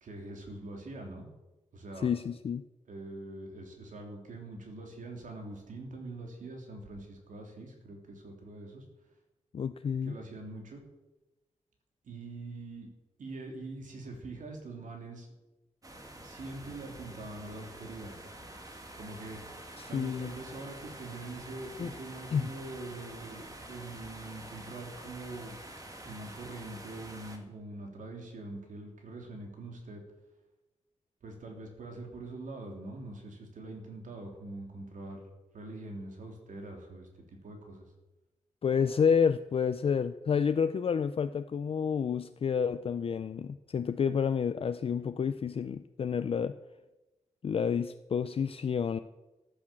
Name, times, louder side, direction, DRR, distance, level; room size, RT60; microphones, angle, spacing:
voice 1, 0.0-1.3 1.7-2.1 2.9-8.8 10.0-10.9 12.0-12.9 13.2-15.3 16.2-18.1 18.9-25.6 26.0-30.0 31.2-35.3 35.5-37.1 37.4-37.8, right 2 dB, 85° right, 2 dB, 3.1 m, -44 dB
voice 2, 2.0-2.6 9.5-10.2 19.8-20.3 21.8-21.9 22.3-22.5 38.6-46.5 47.4-49.0, left 6 dB, 45° left, 11 dB, 0.4 m, -29 dB
sound 1, 15.8-27.4, right 1 dB, 25° right, 1.9 m, -47 dB
14.5 x 8.6 x 7.5 m, 1.1 s
wide cardioid pair, 175°, 13 cm